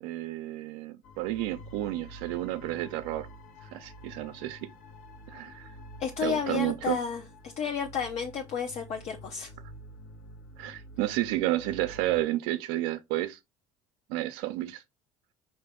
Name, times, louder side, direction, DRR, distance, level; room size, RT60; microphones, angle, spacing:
voice 1, 0.0-3.3 3.6-4.7 5.3-5.8 6.2-7.0 10.6-13.4 14.1-14.8, right 15 dB, 85° right, 0.4 m, -31 dB
sound 1, 1.0-12.2, equal, 70° left, 1.0 m, -48 dB
voice 2, 6.0-9.5, left 7 dB, 55° left, 0.7 m, -32 dB
4.9 x 2.6 x 3.5 m
cardioid pair, 120°, 14 cm